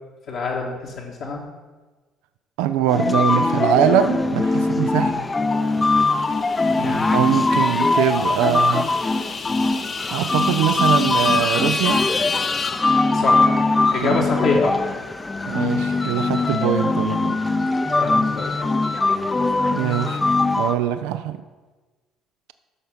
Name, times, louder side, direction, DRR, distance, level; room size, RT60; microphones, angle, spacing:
voice 1, 0.3-1.4 4.9-5.1 6.8-7.0 13.1-13.6 13.9-15.0 18.0-18.5, left 3 dB, 65° left, -5 dB, 1.5 m, -26 dB
voice 2, 2.6-5.3 7.1-8.9 10.1-12.0 14.0-14.2 15.5-17.4 19.7-20.2 20.6-21.4, right 11 dB, 70° right, 11 dB, 0.4 m, -22 dB
sound 1, 2.9-20.7, left 3 dB, 25° left, 0.6 m, -21 dB
sound 2, 5.6-13.7, left 4 dB, 40° left, 1.0 m, -29 dB
11.0 x 6.5 x 5.1 m, 1.3 s
hypercardioid pair, 50°, 0 cm